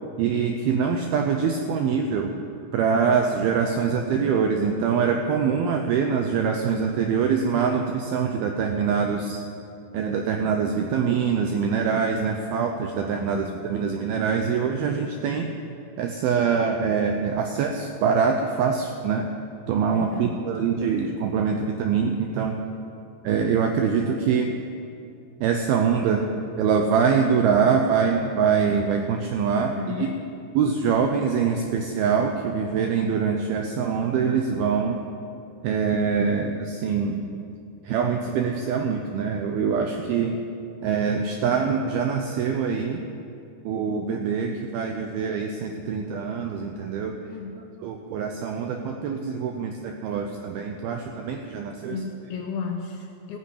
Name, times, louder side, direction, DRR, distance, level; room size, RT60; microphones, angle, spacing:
voice 1, 0.2-2.3 2.7-9.4 9.9-15.5 16.0-19.3 19.7-22.6 23.2-24.5 25.4-30.1 30.5-35.1 35.6-37.2 37.8-40.4 40.8-43.0 43.7-47.3 47.8-52.0, right 6 dB, 80° right, 4 dB, 2.2 m, -24 dB
voice 2, 13.3-13.6 19.9-20.4 29.6-30.1 40.2-40.3 47.3-47.6 51.9-53.4, left 5 dB, 75° left, 3 dB, 2.4 m, -34 dB
15.0 x 9.6 x 8.5 m, 2.6 s
omnidirectional pair, 5.3 m